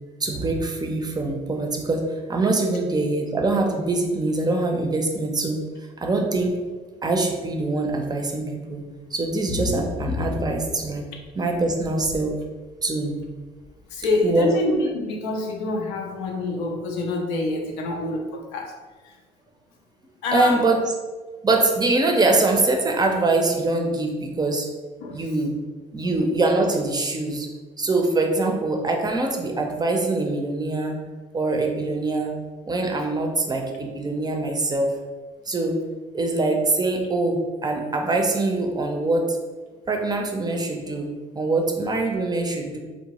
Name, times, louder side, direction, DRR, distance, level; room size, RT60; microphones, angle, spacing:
voice 1, 0.2-5.6 6.0-6.6 7.0-8.8 9.1-11.1 11.4-12.4 12.8-13.3 14.2-14.5 20.3-20.8 21.4-24.7 25.1-25.6 25.9-27.5 27.8-31.0 31.3-32.3 32.7-34.9 35.5-35.8 36.1-39.4 39.9-42.8, right 2 dB, 25° right, 2 dB, 0.5 m, -23 dB
sound 1, 9.2-11.2 11.5-12.2 13.2-13.3 13.6-13.7 14.0-14.1, left 3 dB, 40° left, 0.5 m, -30 dB
voice 2, 13.9-18.7 19.0-19.2 20.2-20.6 25.0-25.2, left 2 dB, 90° left, 1 dB, 0.5 m, -26 dB
2.8 x 2.0 x 2.9 m, 1.3 s
supercardioid pair, 70°, 18 cm